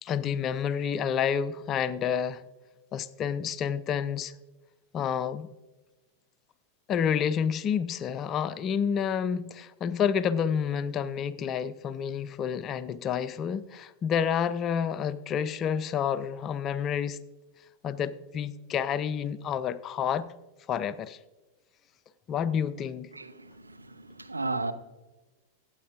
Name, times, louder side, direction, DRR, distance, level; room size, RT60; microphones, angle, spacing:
voice 1, 0.0-2.4 2.9-4.3 4.9-5.5 6.9-17.2 17.8-20.3 20.7-21.2 22.3-23.1, left 7 dB, 30° left, 0.5 m, -29 dB
voice 2, 23.1-24.7, right 3 dB, 80° right, 0.8 m, -34 dB
23.5 x 8.8 x 2.5 m
figure-of-eight pair, 90°, 0 cm